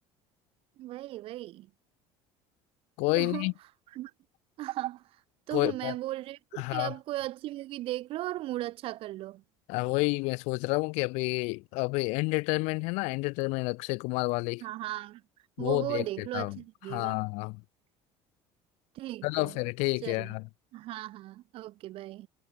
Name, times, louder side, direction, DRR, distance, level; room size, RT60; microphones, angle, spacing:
voice 1, 0.8-1.7 3.1-3.5 3.9-4.1 4.6-5.2 5.5-9.4 14.6-15.2 15.6-17.2 18.9-19.6 20.0-20.3 20.7-22.3, right 16 dB, 50° right, 2.1 m, -37 dB
voice 2, 3.0-3.5 5.5-5.9 6.6-6.9 9.7-14.6 15.6-16.0 16.3-16.6 16.9-17.6 19.2-20.4, left 27 dB, 75° left, 1.7 m, -29 dB
cardioid pair, 155°, 12 cm